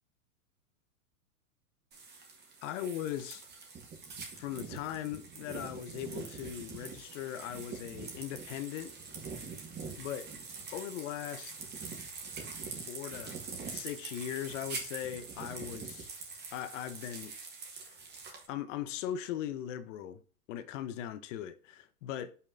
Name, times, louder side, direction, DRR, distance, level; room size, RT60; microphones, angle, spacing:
sound 1, 1.9-18.5, right 4 dB, 20° right, 1.8 m, -44 dB
voice 1, 2.6-3.4 4.4-8.9 10.0-10.3 10.7-11.5 12.9-13.4 13.7-16.1 16.5-17.4 17.8-18.0 18.5-20.2 20.5-22.4, left 11 dB, 55° left, 0.9 m, -39 dB
5.6 x 4.5 x 3.8 m
hypercardioid pair, 130°, 45 cm